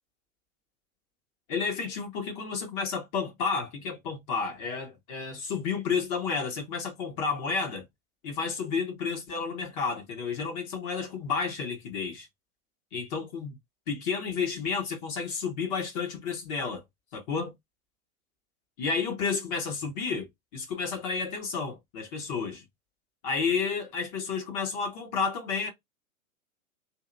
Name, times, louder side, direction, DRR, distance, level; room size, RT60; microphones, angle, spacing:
voice 1, 1.5-7.9 8.2-12.3 12.9-13.6 13.9-16.8 17.1-17.5 18.8-22.6 23.2-25.7, left 5 dB, 30° left, 0.9 m, -31 dB
2.8 x 2.7 x 2.5 m
figure-of-eight pair, 110°, 42 cm